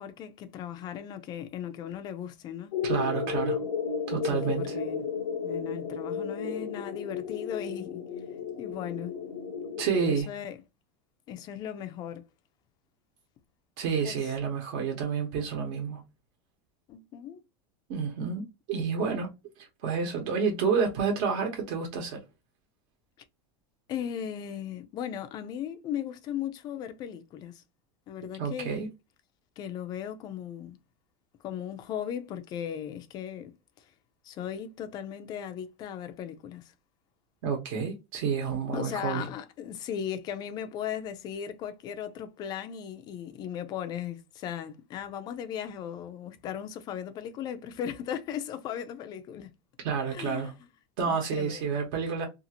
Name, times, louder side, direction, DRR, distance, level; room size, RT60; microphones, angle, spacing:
voice 1, 0.0-2.8 4.2-5.1 5.4-8.0 8.6-9.1 10.1-10.6 11.3-12.2 14.0-14.3 16.9-17.4 23.9-27.6 28.1-28.8 29.6-30.8 31.4-33.8 34.2-36.7 38.7-49.5 50.1-50.5 51.0-51.6, left 9 dB, 30° left, 0.4 m, -37 dB
sound 1, 2.7-10.2, left 6 dB, 85° left, 0.7 m, -33 dB
voice 2, 2.8-3.6 4.1-4.7 9.8-10.3 13.8-16.0 17.9-19.3 19.6-22.2 28.4-28.9 37.4-39.2 49.8-50.5 51.0-52.3, right 6 dB, 50° right, 1.0 m, -29 dB
2.6 x 2.4 x 2.8 m
supercardioid pair, 160°, 15 cm